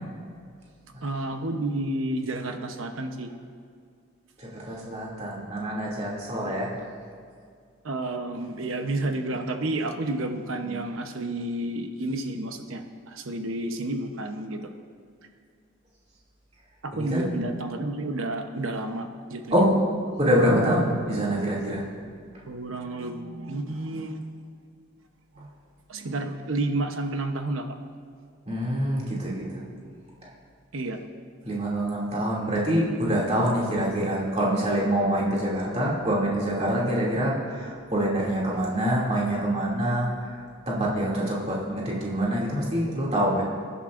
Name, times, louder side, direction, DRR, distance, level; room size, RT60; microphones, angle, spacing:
voice 1, 1.0-3.3 6.4-6.6 7.8-14.7 16.8-19.6 22.5-24.2 25.4-25.5 25.9-27.7 30.7-31.0, right 2 dB, 75° right, 6 dB, 0.9 m, -30 dB
voice 2, 4.4-6.7 16.9-17.3 19.5-19.7 20.2-21.8 28.5-29.6 30.2-30.3 31.4-40.4 40.7-43.4, equal, 30° right, -5 dB, 2.5 m, -25 dB
22.0 x 11.0 x 2.6 m, 2.2 s
head